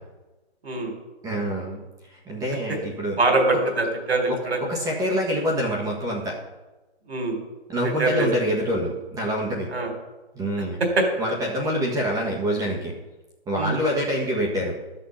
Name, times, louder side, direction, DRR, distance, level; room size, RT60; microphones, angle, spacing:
voice 1, 0.6-0.9 3.2-4.6 7.1-7.4 8.0-8.3 9.7-9.9 11.0-11.1 13.6-13.8, right 2 dB, 75° right, 3 dB, 3.6 m, -23 dB
voice 2, 1.2-1.8 2.1-3.2 4.3-4.4 4.7-6.4 7.7-9.7 10.3-10.8 11.2-12.9 13.5-14.7, equal, 10° right, -2 dB, 1.6 m, -26 dB
12.5 x 6.6 x 5.7 m, 1.1 s
hypercardioid pair, 140°, 32 cm